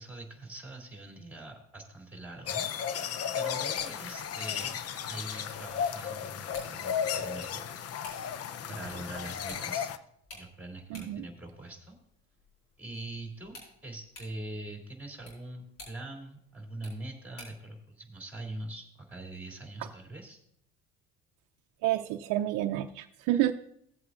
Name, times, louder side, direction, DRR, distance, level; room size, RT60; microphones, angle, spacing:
voice 1, 0.0-3.1 3.3-7.6 8.7-9.9 10.3-12.0 12.8-13.5 13.8-20.4, right 2 dB, 5° right, 1 dB, 3.0 m, -43 dB
sound 1, 2.5-10.0, left 8 dB, 45° left, 0.7 m, -34 dB
sound 2, 3.6-17.7, left 1 dB, 65° left, 4.7 m, -54 dB
voice 2, 10.9-11.2 21.8-23.5, right 13 dB, 65° right, 5 dB, 0.6 m, -29 dB
16.5 x 7.9 x 2.5 m, 0.72 s
supercardioid pair, 70°, 33 cm